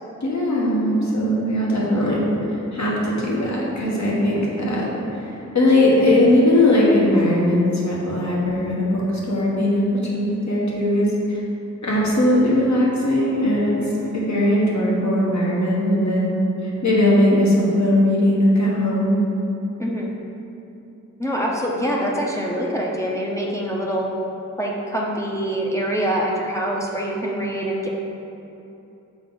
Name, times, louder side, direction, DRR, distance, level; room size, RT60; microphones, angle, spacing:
voice 1, 0.2-2.2 2.7-9.0 9.3-9.8 10.1-11.4 11.8-13.7 14.1-16.3 16.6-19.2, left 1 dB, 60° left, -5 dB, 1.3 m, -19 dB
voice 2, 13.8-14.1 19.8-20.1 21.2-24.1 24.6-27.9, equal, 10° left, -4 dB, 0.7 m, -25 dB
6.1 x 4.7 x 3.9 m, 2.9 s
wide cardioid pair, 85°, 31 cm